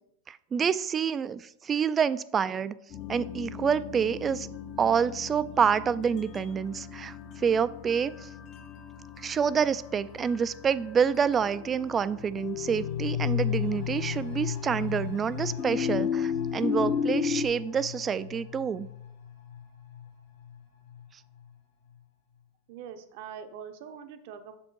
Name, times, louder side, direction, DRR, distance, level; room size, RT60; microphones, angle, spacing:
voice 1, 0.3-2.8 3.1-4.5 4.8-8.3 9.2-18.9, right 7 dB, 25° right, 15 dB, 0.3 m, -27 dB
sound 1, 2.9-17.5, left 7 dB, 45° left, 0.8 m, -36 dB
sound 2, 12.1-21.6 21.9-22.0, left 10 dB, 65° left, 1.4 m, -36 dB
voice 2, 22.7-24.6, right 7 dB, 60° right, 8 dB, 0.7 m, -43 dB
6.7 x 4.4 x 4.5 m, 0.75 s
hypercardioid pair, 120°, 0 cm